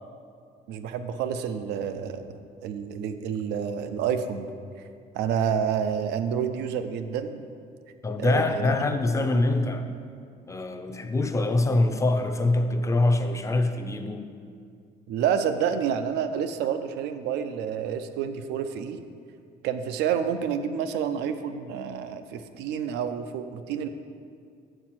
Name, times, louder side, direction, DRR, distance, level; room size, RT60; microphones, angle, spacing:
voice 1, 0.7-2.3 2.6-4.4 5.1-7.4 8.2-8.7 15.1-19.0 19.6-23.9, right 8 dB, 85° right, 9 dB, 0.5 m, -29 dB
voice 2, 8.0-9.9 10.5-14.2, left 2 dB, 20° left, 7 dB, 0.5 m, -24 dB
6.6 x 4.5 x 5.9 m, 2.2 s
cardioid pair, 110°, 17 cm